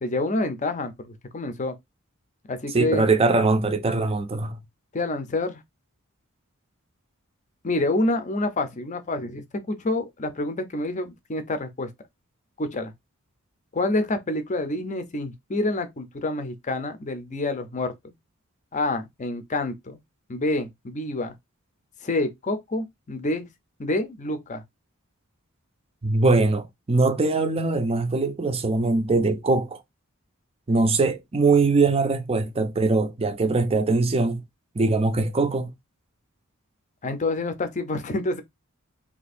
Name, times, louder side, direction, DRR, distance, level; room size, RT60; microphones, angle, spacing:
voice 1, 0.0-1.7 2.5-3.1 4.9-5.6 7.6-11.9 12.6-12.9 13.7-18.1 18.7-20.0 20.3-21.3 22.0-23.5 23.8-24.6 37.0-38.4, left 2 dB, 35° left, 0.6 m, -27 dB
voice 2, 2.7-4.6 26.0-29.8 30.7-34.4 34.7-35.7, right 3 dB, 25° right, 0.5 m, -22 dB
2.8 x 2.6 x 4.1 m
head